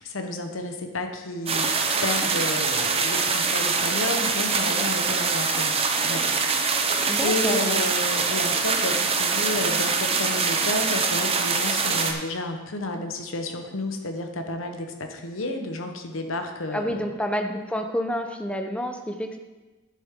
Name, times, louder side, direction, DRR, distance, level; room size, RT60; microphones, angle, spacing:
voice 1, 0.0-17.0, left 2 dB, 70° left, 5 dB, 1.0 m, -31 dB
sound 1, 1.5-12.1, right 4 dB, 30° right, 0.7 m, -24 dB
voice 2, 7.1-7.8 16.7-19.4, equal, 5° left, 5 dB, 0.7 m, -29 dB
10.5 x 7.6 x 3.7 m, 1.2 s
head